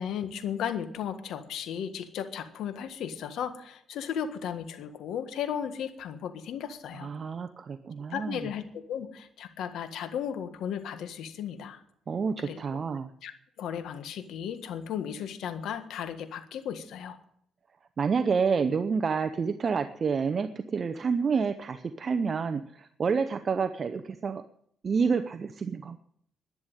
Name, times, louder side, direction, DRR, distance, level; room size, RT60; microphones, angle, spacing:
voice 1, 0.0-7.1 8.1-11.8 12.4-12.6 13.2-13.3 13.6-17.2, left 8 dB, 80° left, 9 dB, 1.6 m, -35 dB
voice 2, 7.0-8.4 12.1-13.1 18.0-24.4 24.8-26.0, right 5 dB, 45° right, 10 dB, 0.7 m, -28 dB
11.0 x 10.5 x 9.1 m, 0.69 s
cardioid pair, 90°, 0 cm